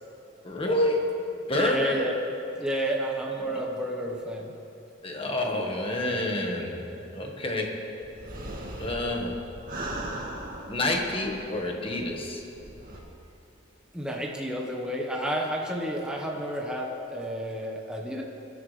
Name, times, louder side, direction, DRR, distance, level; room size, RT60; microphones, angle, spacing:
voice 1, 0.4-2.1 3.4-3.6 5.0-8.0 8.7-9.5 10.7-12.6, left 1 dB, 25° left, 1 dB, 1.5 m, -29 dB
voice 2, 1.5-2.1 2.5-4.5 13.9-18.2, equal, 5° right, -1 dB, 1.2 m, -31 dB
sound 1, 8.0-11.6 12.0-12.1 12.5-13.0, right 1 dB, 45° right, 2.1 m, -38 dB
23.0 x 13.0 x 3.4 m, 3.0 s
head